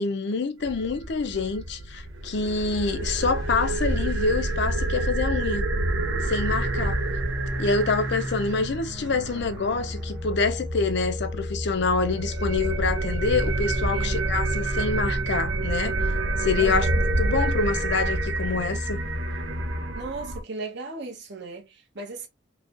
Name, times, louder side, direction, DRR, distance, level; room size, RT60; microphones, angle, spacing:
voice 1, 0.0-5.7 6.2-7.0 7.6-16.0 16.4-19.0, left 4 dB, 65° left, 0.6 m, -26 dB
sound 1, 0.6-20.4, right 2 dB, 85° right, 0.6 m, -28 dB
sound 2, 6.2-19.9, left 1 dB, 10° right, 0.7 m, -34 dB
voice 2, 13.9-14.4 16.6-17.0 19.9-22.3, right 3 dB, 65° right, 1.1 m, -36 dB
4.7 x 2.3 x 2.5 m
head